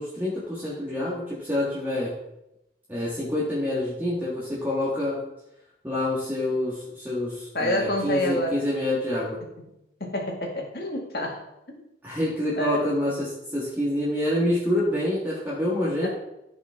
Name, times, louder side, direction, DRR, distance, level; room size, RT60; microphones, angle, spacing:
voice 1, 0.0-2.2 2.9-5.2 5.8-9.4 12.0-16.1, left 1 dB, 10° right, -8 dB, 1.7 m, -27 dB
voice 2, 7.5-8.6 10.0-11.4 11.8-11.9 12.6-12.9 16.0-16.1, left 1 dB, 60° left, 0 dB, 1.9 m, -27 dB
14.5 x 5.2 x 3.6 m, 0.88 s
head